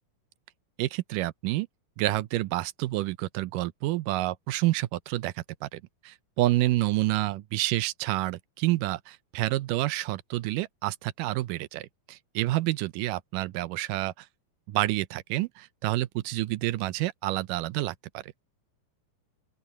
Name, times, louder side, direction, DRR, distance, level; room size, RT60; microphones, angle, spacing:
voice 1, 0.8-1.7 2.0-14.3 14.7-18.3, right 17 dB, 80° right, 2.3 m, -29 dB
open air
omnidirectional pair, 3.9 m